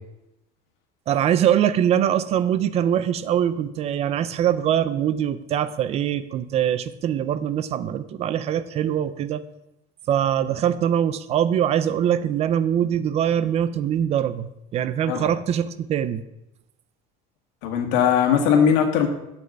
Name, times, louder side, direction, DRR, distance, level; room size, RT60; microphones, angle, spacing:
voice 1, 1.1-9.4 10.1-16.2, right 10 dB, 30° right, 14 dB, 0.5 m, -23 dB
voice 2, 17.6-19.1, left 7 dB, 75° left, 5 dB, 1.8 m, -19 dB
7.9 x 5.8 x 6.7 m, 0.90 s
cardioid pair, 165°, 21 cm